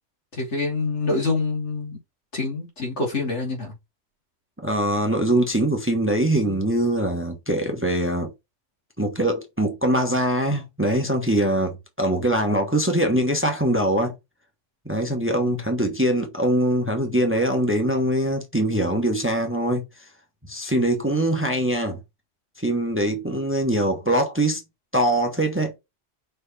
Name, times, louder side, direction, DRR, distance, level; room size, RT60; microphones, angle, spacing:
voice 1, 0.3-2.0 2.3-3.7 15.4-15.6, left 3 dB, 65° left, 3.0 m, -26 dB
voice 2, 4.6-8.3 9.0-14.1 14.8-20.1 20.5-22.0 22.6-24.6 24.9-25.7, right 1 dB, 10° right, 1.3 m, -23 dB
5.3 x 4.5 x 4.2 m
omnidirectional pair, 1.3 m